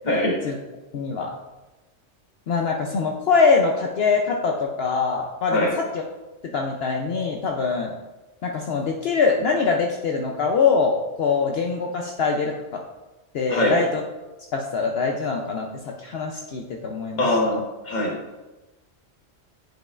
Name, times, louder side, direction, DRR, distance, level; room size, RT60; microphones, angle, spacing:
voice 1, 0.0-0.4 5.5-5.8 13.5-13.9 17.2-18.2, left 1 dB, 40° left, -1 dB, 1.3 m, -22 dB
voice 2, 0.9-1.3 2.5-5.7 6.5-7.9 8.4-12.8 13.3-14.0 14.5-15.7 16.0-17.3, left 5 dB, 60° left, 1 dB, 0.8 m, -23 dB
9.1 x 5.2 x 2.4 m, 1.1 s
omnidirectional pair, 1.3 m